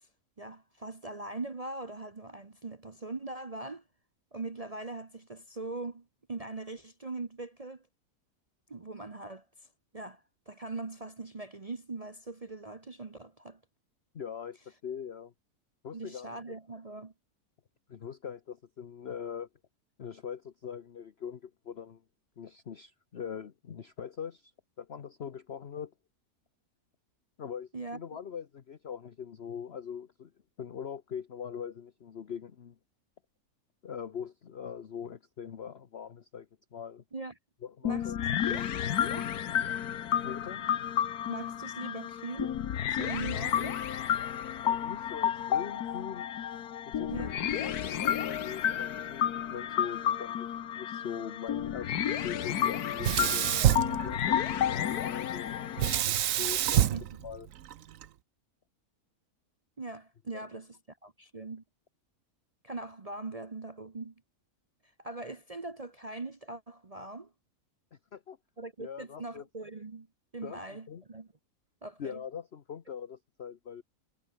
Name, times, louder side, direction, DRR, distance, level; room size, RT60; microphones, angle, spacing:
voice 1, 0.4-3.8 4.3-7.8 8.7-9.4 9.9-13.6 15.9-17.1 27.7-28.0 37.1-37.3 37.8-38.1 38.5-38.6 39.1-39.3 41.3-42.6 42.9-43.8 47.1-47.3 53.5-53.7 56.9-57.0 59.8-61.6 62.6-64.1 65.0-67.3 68.6-70.1 70.3-71.3 71.8-72.2, right 3 dB, 30° right, 1.0 m, -41 dB
voice 2, 14.1-14.6 14.8-15.3 15.8-16.4 17.9-19.5 20.0-22.0 22.4-24.5 24.8-25.9 27.4-30.3 30.6-32.8 33.8-37.0 37.6-38.2 38.4-38.7 40.2-40.7 44.6-46.3 46.9-50.5 50.8-53.5 54.0-55.6 56.3-56.9 57.2-57.5 67.9-68.4 68.8-69.5 70.4-71.0 72.0-73.8, left 7 dB, 45° left, 1.2 m, -42 dB
sound 1, 37.8-56.0, left 9 dB, 85° left, 1.6 m, -31 dB
Sink (filling or washing), 53.0-54.6 55.8-58.0, right 11 dB, 65° right, 1.1 m, -27 dB
omnidirectional pair, 1.6 m